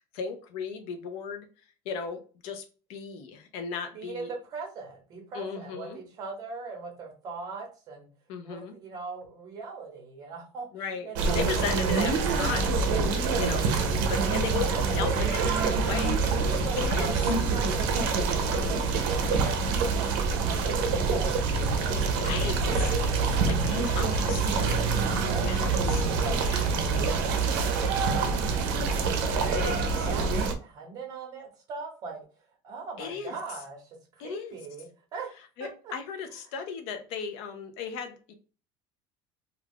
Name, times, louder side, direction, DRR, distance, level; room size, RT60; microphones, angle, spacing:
voice 1, 0.1-1.5 1.9-2.6 2.9-4.3 5.3-6.0 8.3-8.7 10.7-11.1 11.3-13.8 14.1-14.7 14.9-15.5 15.8-16.2 16.8-17.1 22.2-22.9 23.5-24.5 25.4-26.0 26.4-26.7 29.5-29.8 33.0-33.4 34.2-34.6 35.6-38.3, left 6 dB, 60° left, 7 dB, 0.6 m, -35 dB
voice 2, 3.9-8.1 8.4-11.7 13.3-13.8 14.2-14.3 14.5-16.2 16.5-23.0 24.4-25.8 26.1-32.2 32.6-35.3 35.6-35.9, right 4 dB, 35° right, 1 dB, 0.8 m, -40 dB
sound 1, 11.1-30.5, right 4 dB, 90° right, 0.5 m, -26 dB
2.3 x 2.3 x 3.4 m, 0.36 s
cardioid pair, 175°, 11 cm